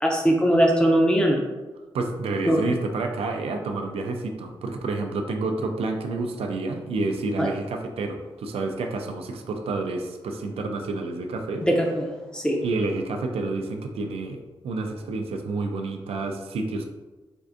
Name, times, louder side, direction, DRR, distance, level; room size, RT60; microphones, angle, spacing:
voice 1, 0.0-1.4 2.5-2.6 7.4-7.5 11.7-12.0 12.3-12.6, right 1 dB, 10° left, 0 dB, 0.4 m, -20 dB
voice 2, 1.9-11.6 12.6-14.4 14.6-16.8, right 3 dB, 85° right, 4 dB, 0.4 m, -29 dB
4.4 x 2.5 x 2.5 m, 1.2 s
wide cardioid pair, 175°, 10 cm